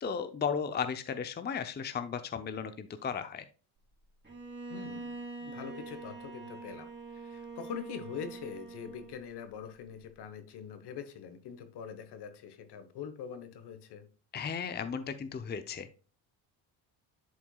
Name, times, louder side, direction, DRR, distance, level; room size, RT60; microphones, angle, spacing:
voice 1, 0.0-3.4 14.3-16.1, left 6 dB, 20° left, 0.6 m, -35 dB
Bowed string instrument, 4.2-9.3, right 4 dB, 25° right, 3.0 m, -44 dB
voice 2, 4.7-14.0, left 7 dB, 60° left, 1.3 m, -44 dB
11.0 x 4.5 x 2.3 m
cardioid pair, 90°, 45 cm